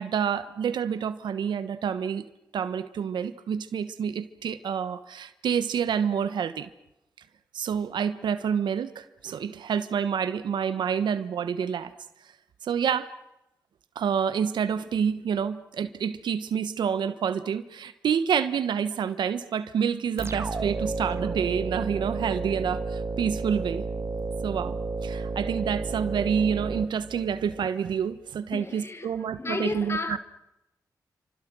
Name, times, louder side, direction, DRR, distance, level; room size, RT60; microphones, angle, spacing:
voice 1, 0.0-2.3 2.5-6.7 7.5-11.9 12.6-13.1 13.9-23.8 24.4-30.2, right 7 dB, 85° right, 1.4 m, -28 dB
sound 1, 20.2-27.7, right 4 dB, 35° right, 1.8 m, -32 dB
voice 2, 28.5-30.2, left 3 dB, 35° left, 1.2 m, -33 dB
28.5 x 25.5 x 6.3 m
cardioid pair, 50°, 8 cm